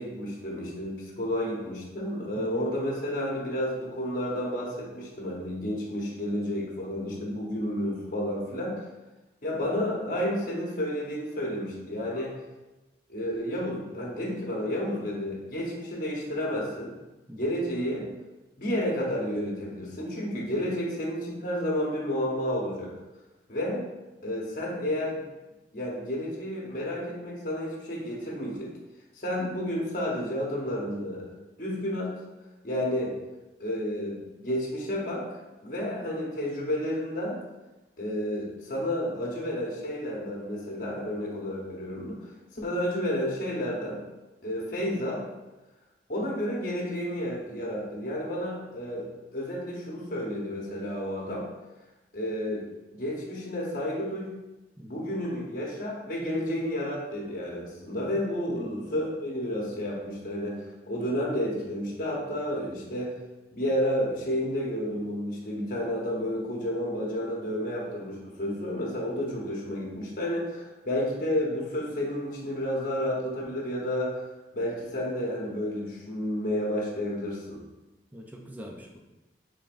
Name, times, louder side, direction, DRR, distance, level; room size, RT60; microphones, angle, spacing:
voice 1, 0.0-8.9 9.4-12.4 13.1-16.9 17.4-18.1 18.6-22.9 23.5-23.8 24.2-25.2 25.7-28.7 29.2-31.3 31.6-32.1 32.6-33.2 33.6-35.3 35.6-37.4 38.0-42.2 42.5-44.0 44.4-45.2 46.1-51.5 52.1-52.6 52.9-54.3 54.9-63.2 63.5-74.2 74.5-77.6, equal, 50° left, -3 dB, 1.0 m, -31 dB
voice 2, 2.4-2.7 17.3-17.5 54.8-55.1 58.5-59.0 78.1-79.0, equal, 10° right, 1 dB, 0.5 m, -42 dB
5.2 x 3.6 x 2.5 m, 1.1 s
head